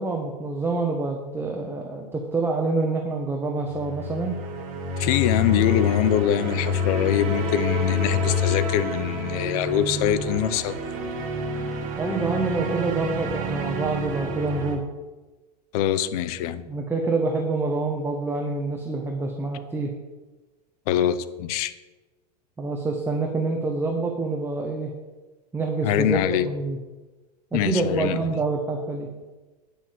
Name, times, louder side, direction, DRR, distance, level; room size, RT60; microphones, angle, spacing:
voice 1, 0.0-4.4 12.0-14.8 16.7-19.9 22.6-24.9 25.5-26.8 27.5-29.1, right 3 dB, 10° right, 1 dB, 1.3 m, -27 dB
sound 1, 3.7-14.8, left 2 dB, 40° right, 2.2 m, -27 dB
voice 2, 5.0-10.8 15.7-16.7 20.9-21.7 25.8-26.5 27.5-28.2, left 10 dB, 60° left, 14 dB, 0.8 m, -24 dB
8.6 x 6.1 x 7.8 m, 1.2 s
hypercardioid pair, 115°, 21 cm